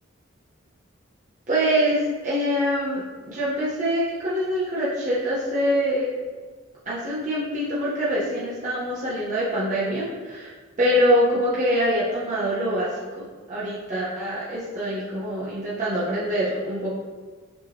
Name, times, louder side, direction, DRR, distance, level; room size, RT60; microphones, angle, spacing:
voice 1, 1.5-6.1 6.9-12.9 13.2-16.9, equal, 40° right, -9 dB, 0.8 m, -24 dB
6.2 x 2.7 x 2.9 m, 1.4 s
head